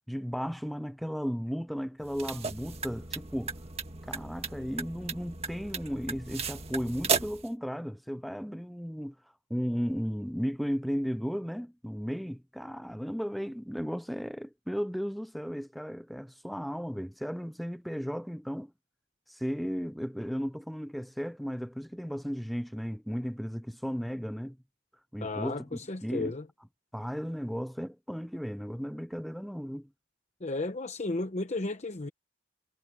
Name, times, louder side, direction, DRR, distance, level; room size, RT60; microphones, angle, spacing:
voice 1, 0.1-3.6 4.0-9.2 9.5-18.7 19.3-24.6 25.1-26.3 26.9-29.9, equal, ahead, 0.3 m, -35 dB
sound 1, 2.0-7.5, right 5 dB, 35° right, 1.7 m, -35 dB
voice 2, 25.2-26.4 30.4-32.1, left 2 dB, 40° left, 0.8 m, -34 dB
head